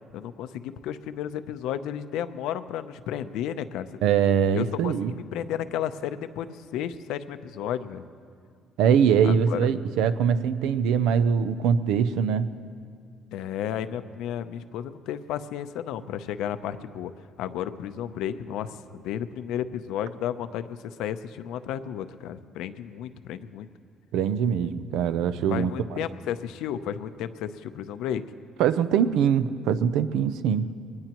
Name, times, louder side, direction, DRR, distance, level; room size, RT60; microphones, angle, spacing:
voice 1, 0.1-3.9 4.5-8.0 9.2-9.7 13.3-17.1 17.4-23.7 25.5-28.2, left 10 dB, 85° left, 11 dB, 0.6 m, -33 dB
voice 2, 4.0-5.1 8.8-12.5 24.1-25.7 28.6-30.7, right 7 dB, 90° right, 12 dB, 0.6 m, -22 dB
22.5 x 19.0 x 3.0 m, 2.2 s
cardioid pair, 130°, 0 cm